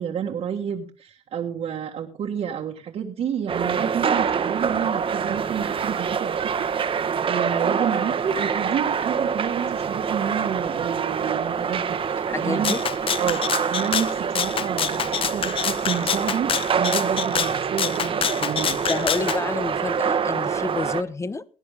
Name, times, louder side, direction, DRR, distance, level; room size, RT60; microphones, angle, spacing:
voice 1, 0.0-7.0 7.3-11.9 12.4-12.7 13.2-13.4 13.7-18.8, right 8 dB, 65° right, 0 dB, 1.7 m, -29 dB
sound 1, 3.5-21.0, right 6 dB, 50° right, 1.3 m, -26 dB
voice 2, 12.3-12.8 18.8-21.5, left 3 dB, 25° left, 16 dB, 1.0 m, -29 dB
Rattle (instrument), 12.6-19.4, left 7 dB, 50° left, 0.8 m, -26 dB
19.0 x 9.9 x 3.6 m, 0.36 s
cardioid pair, 85°, 12 cm